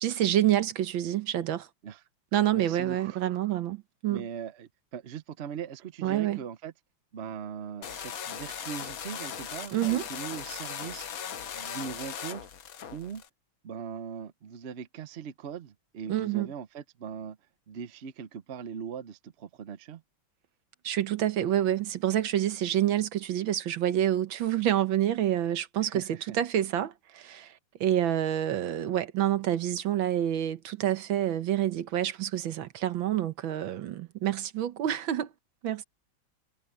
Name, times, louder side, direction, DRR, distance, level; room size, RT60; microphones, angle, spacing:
voice 1, 0.0-1.7 2.3-4.2 6.0-6.4 9.7-10.0 16.1-16.5 20.8-27.5 27.8-35.3 35.6-35.8, right 11 dB, 75° right, 1.7 m, -28 dB
voice 2, 2.5-3.2 4.1-6.7 7.1-11.1 11.5-12.5 12.9-13.2 13.6-17.4 17.7-20.0 25.8-26.4, right 7 dB, 55° right, 0.7 m, -40 dB
sound 1, 7.8-13.3, left 8 dB, 50° left, 1.3 m, -38 dB
omnidirectional pair, 2.2 m